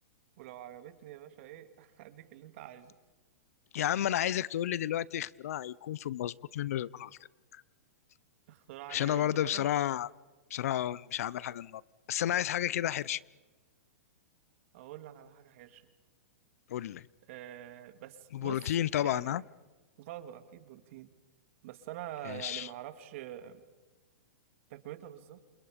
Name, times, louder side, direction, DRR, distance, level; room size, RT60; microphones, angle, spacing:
voice 1, 0.4-2.9 8.5-9.7 14.7-15.8 17.3-18.7 19.0-19.4 20.0-21.1 21.6-23.6 24.7-25.4, right 12 dB, 55° right, 9 dB, 2.5 m, -46 dB
voice 2, 3.7-7.2 7.5-7.6 8.9-10.1 10.5-11.8 12.1-13.2 16.7-17.1 18.3-19.4 22.2-22.7, left 11 dB, 70° left, 23 dB, 0.7 m, -32 dB
29.5 x 28.0 x 5.2 m, 1.2 s
hypercardioid pair, 135°, 8 cm